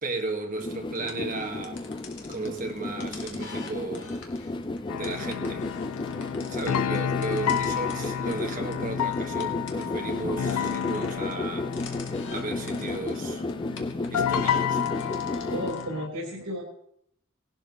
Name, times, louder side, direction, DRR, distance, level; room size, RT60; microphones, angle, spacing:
voice 1, 0.0-1.9 2.3-4.2 4.9-5.7 6.5-11.7 12.3-13.4 14.1-14.8, right 3 dB, 40° right, 1.5 m, -35 dB
sound 1, 0.6-15.7, left 2 dB, 20° left, 0.4 m, -33 dB
sound 2, 0.9-15.9, left 4 dB, 55° left, 1.6 m, -46 dB
sound 3, 4.9-16.1, left 8 dB, 85° left, 0.4 m, -31 dB
voice 2, 15.5-16.6, equal, 85° right, 3.4 m, -33 dB
18.5 x 11.5 x 3.0 m
head